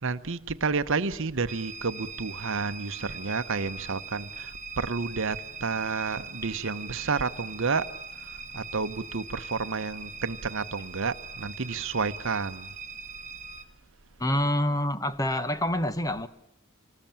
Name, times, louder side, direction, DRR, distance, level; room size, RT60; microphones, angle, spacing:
voice 1, 0.0-7.9 8.2-12.7, right 4 dB, 65° right, 1.0 m, -30 dB
sound 1, 1.5-13.6, right 4 dB, 35° right, 1.5 m, -41 dB
voice 2, 14.2-16.3, left 1 dB, 15° left, 1.1 m, -27 dB
27.5 x 20.0 x 8.8 m
head